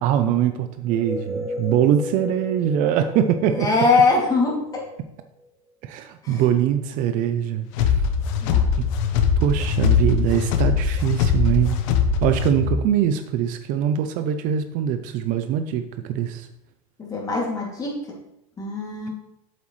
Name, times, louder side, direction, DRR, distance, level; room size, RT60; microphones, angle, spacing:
voice 1, 0.0-3.7 5.8-8.1 9.4-11.8 12.2-16.5, right 9 dB, 50° right, 9 dB, 0.6 m, -22 dB
sound 1, 0.9-5.5, left 1 dB, ahead, 0.5 m, -35 dB
voice 2, 3.5-4.8 6.2-6.4 8.4-8.6 17.0-18.0 18.6-19.1, left 3 dB, 20° left, -2 dB, 2.4 m, -22 dB
sound 2, 7.7-12.8, left 6 dB, 65° left, 1.0 m, -21 dB
8.1 x 7.3 x 3.2 m, 0.83 s
supercardioid pair, 130°, 18 cm